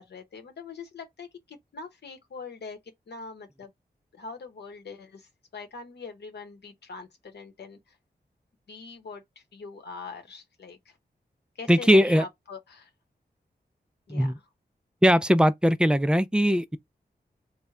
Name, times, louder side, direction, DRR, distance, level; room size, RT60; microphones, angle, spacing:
voice 1, 0.0-2.8 3.1-3.7 4.1-8.0 8.7-9.2 9.5-11.0 11.6-12.9 14.1-14.3, left 4 dB, 80° left, 0.9 m, -42 dB
voice 2, 11.7-12.2 14.1-14.4 15.0-16.8, equal, 5° right, 0.3 m, -20 dB
3.3 x 2.1 x 3.6 m
wide cardioid pair, 80°, 17 cm